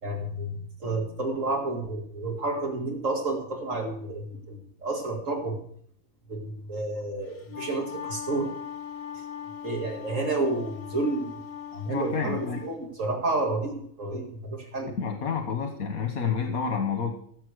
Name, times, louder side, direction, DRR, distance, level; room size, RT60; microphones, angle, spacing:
voice 1, 0.0-5.6 6.3-8.5 9.1-9.2 9.6-11.3 11.7-14.9, right 2 dB, 60° right, 1 dB, 2.4 m, -30 dB
Wind instrument woodwind instrument, 7.3-12.7, left 8 dB, 30° left, 0.9 m, -40 dB
voice 2, 11.9-12.6 15.0-17.1, left 6 dB, 80° left, 4 dB, 1.8 m, -29 dB
15.5 x 7.4 x 6.5 m, 0.65 s
omnidirectional pair, 1.5 m